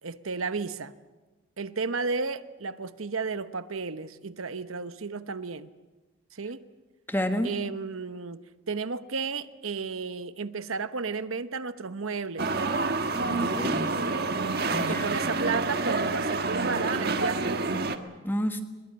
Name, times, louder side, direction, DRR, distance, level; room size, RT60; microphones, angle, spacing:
voice 1, 0.0-0.9 1.6-5.7 6.3-6.6 7.4-8.4 8.7-12.5 14.7-17.8, right 4 dB, 90° right, 1.0 m, -33 dB
voice 2, 7.1-7.5 13.3-13.9 14.7-15.2 18.2-18.6, equal, 10° left, 1.5 m, -29 dB
sound 1, 12.4-18.0, right 3 dB, 50° right, 1.4 m, -28 dB
22.5 x 22.0 x 8.8 m
head